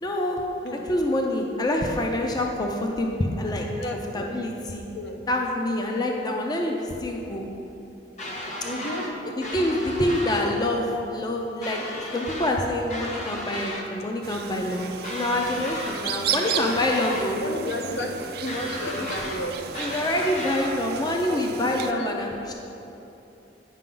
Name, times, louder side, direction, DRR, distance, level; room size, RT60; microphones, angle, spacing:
voice 1, 0.0-0.5 0.9-3.6 4.1-4.9 5.3-7.5 9.2-11.8 12.1-17.4 19.0-19.3 19.8-22.5, left 1 dB, 20° left, 1 dB, 0.5 m, -26 dB
voice 2, 3.8-4.3 4.9-5.2 8.6-9.1 17.3-18.1 18.4-19.9 20.2-20.3 21.2-22.3, left 1 dB, 70° left, 3 dB, 0.7 m, -33 dB
sound 1, 8.2-9.1 9.4-10.5 11.6-12.6 12.9-13.9 15.0-16.0 16.3-17.3 18.5-19.4 19.7-20.7, left 1 dB, 40° left, 0.9 m, -34 dB
sound 2, 14.2-21.9, right 8 dB, 55° right, 0.4 m, -34 dB
9.0 x 5.8 x 3.8 m, 2.9 s
head